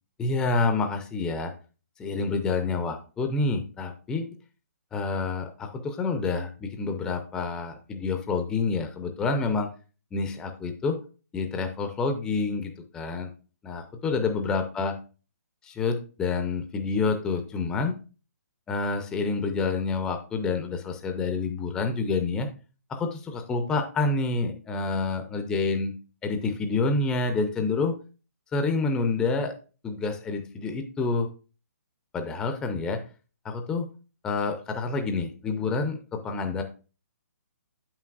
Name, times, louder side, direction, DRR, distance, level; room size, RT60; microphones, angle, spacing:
voice 1, 0.2-1.5 2.0-4.3 4.9-9.7 10.1-11.0 11.3-13.3 13.6-15.0 15.6-18.0 18.7-22.5 22.9-25.9 26.2-27.9 28.5-29.5 29.8-31.3 32.1-33.0 33.4-33.9 34.2-36.6, left 4 dB, 10° left, 6 dB, 0.4 m, -28 dB
7.1 x 5.8 x 2.3 m, 0.34 s
hypercardioid pair, 160°, 9 cm